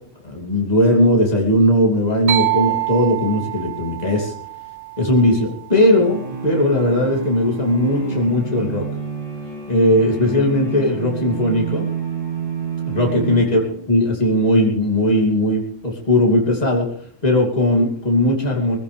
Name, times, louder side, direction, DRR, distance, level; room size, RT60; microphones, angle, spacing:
voice 1, 0.2-4.3 5.0-8.8 9.7-11.9 12.9-13.6 13.9-16.9 17.2-18.8, left 1 dB, 30° left, -1 dB, 2.9 m, -18 dB
sound 1, 2.3-6.0, right 17 dB, 60° right, 1.2 m, -26 dB
sound 2, 5.7-14.1, right 6 dB, 40° right, 8.1 m, -29 dB
21.0 x 15.5 x 3.4 m, 0.63 s
omnidirectional pair, 1.3 m